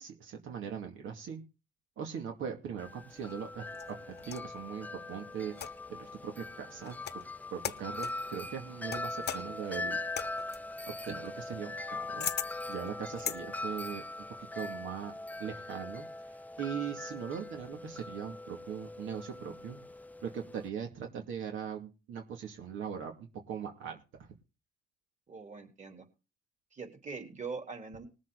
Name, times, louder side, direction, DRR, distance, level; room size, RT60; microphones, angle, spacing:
voice 1, 0.0-1.4 2.0-6.9 7.5-10.0 11.0-14.0 14.5-15.1 15.4-19.8 20.2-23.1 23.5-24.0, right 7 dB, 80° right, 3 dB, 2.3 m, -40 dB
Wind chime, 2.8-20.7, left 2 dB, 10° left, 0.5 m, -41 dB
sound 1, 3.2-4.5 5.5-6.0 6.8-7.3 7.6-8.2 8.9-13.4, left 9 dB, 55° left, 1.0 m, -40 dB
voice 2, 25.3-26.1 26.7-28.1, right 4 dB, 40° right, 5 dB, 3.7 m, -42 dB
20.0 x 7.5 x 4.0 m, 0.31 s
cardioid pair, 90°, 20 cm